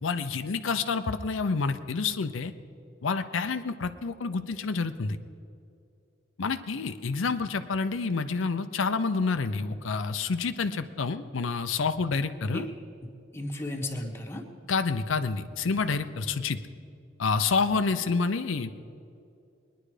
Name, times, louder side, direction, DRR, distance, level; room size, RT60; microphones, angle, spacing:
voice 1, 0.0-2.5 3.0-5.2 6.4-12.7 14.7-16.6 17.2-18.7, left 4 dB, 90° left, 9 dB, 0.6 m, -28 dB
voice 2, 13.0-14.4, left 1 dB, 15° left, 2 dB, 1.3 m, -35 dB
22.0 x 10.0 x 4.9 m, 2.5 s
head